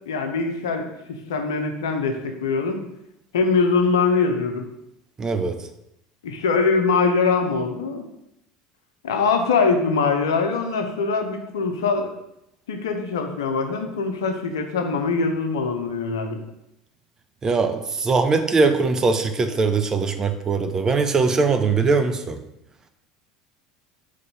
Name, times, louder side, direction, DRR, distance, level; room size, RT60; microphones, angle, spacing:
voice 1, 0.1-0.9 1.3-2.8 3.3-4.6 6.2-8.0 9.0-12.1 12.7-16.4, left 4 dB, 70° left, 5 dB, 0.8 m, -22 dB
voice 2, 5.2-5.6 17.4-22.4, right 4 dB, 25° right, 7 dB, 0.6 m, -21 dB
5.2 x 3.3 x 5.6 m, 0.84 s
figure-of-eight pair, 70°, 2 cm